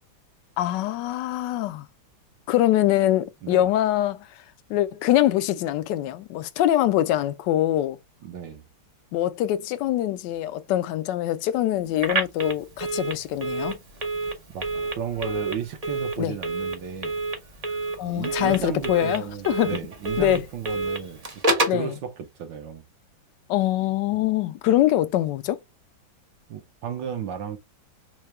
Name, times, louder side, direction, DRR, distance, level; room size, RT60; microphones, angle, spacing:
voice 1, 0.6-1.9 2.5-4.3 4.7-8.0 9.1-13.8 16.2-16.3 18.0-19.8 20.2-20.4 21.7-21.9 23.5-25.6, left 13 dB, 75° left, 1.1 m, -23 dB
voice 2, 8.2-8.6 14.5-14.7 15.0-17.2 18.0-22.8 24.2-24.3 26.5-27.6, right 7 dB, 70° right, 1.5 m, -34 dB
Telephone, 12.0-21.9, right 2 dB, 50° right, 0.4 m, -29 dB
4.7 x 2.2 x 3.2 m
omnidirectional pair, 2.1 m